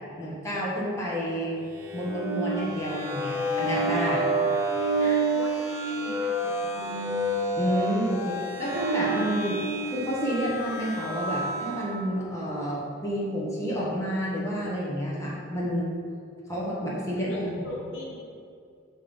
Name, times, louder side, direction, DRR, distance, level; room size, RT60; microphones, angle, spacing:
voice 1, 0.2-1.7 1.9-4.2 7.5-15.9 16.5-17.4, equal, 15° left, -6 dB, 1.0 m, -29 dB
sound 1, 1.7-12.0, right 2 dB, 15° right, 0.7 m, -29 dB
voice 2, 4.0-4.3 4.8-7.2 17.1-18.2, left 1 dB, 75° left, -3 dB, 1.2 m, -41 dB
5.5 x 3.5 x 5.5 m, 2.3 s
head